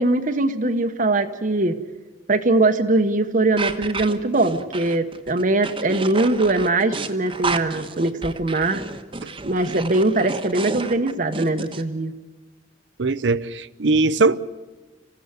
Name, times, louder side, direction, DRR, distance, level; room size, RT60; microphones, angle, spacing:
voice 1, 0.0-1.8 2.3-8.8 9.4-12.1, right 2 dB, 45° right, 1.1 m, -21 dB
sound 1, 3.6-11.8, right 3 dB, 30° right, 1.2 m, -31 dB
voice 2, 13.0-14.4, right 3 dB, 85° right, 0.7 m, -20 dB
27.0 x 16.0 x 8.1 m
head